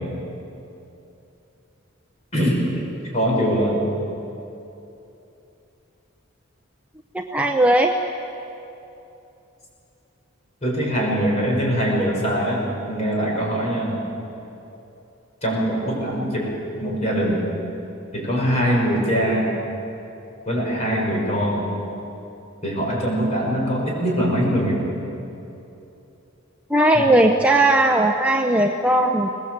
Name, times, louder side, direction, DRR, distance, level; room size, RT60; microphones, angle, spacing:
voice 1, 2.3-2.7 3.1-3.8 10.6-14.0 15.4-16.5 16.8-17.4 18.1-19.5 20.5-21.7 22.6-24.8 26.9-27.0, equal, 30° left, -2 dB, 6.4 m, -22 dB
voice 2, 7.1-8.0 26.7-29.3, right 1 dB, 5° right, 2 dB, 0.7 m, -18 dB
23.0 x 20.0 x 8.1 m, 2.9 s
head